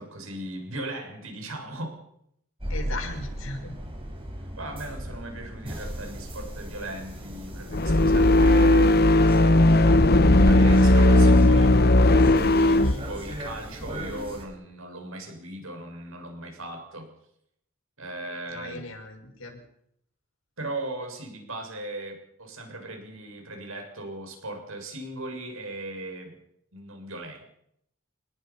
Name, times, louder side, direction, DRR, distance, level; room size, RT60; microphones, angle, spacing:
voice 1, 0.0-2.0 4.6-9.1 10.4-11.7 12.9-17.1 18.0-18.9 20.6-26.4 26.7-27.5, right 1 dB, 75° right, 3 dB, 7.1 m, -37 dB
sound 1, 2.6-14.5, equal, 25° right, 5.9 m, -37 dB
voice 2, 2.7-3.7 12.6-13.1 18.5-19.6, left 2 dB, 75° left, 3 dB, 6.4 m, -37 dB
sound 2, 7.7-13.0, left 1 dB, 50° left, 1.2 m, -17 dB
28.0 x 20.5 x 5.9 m, 0.74 s
head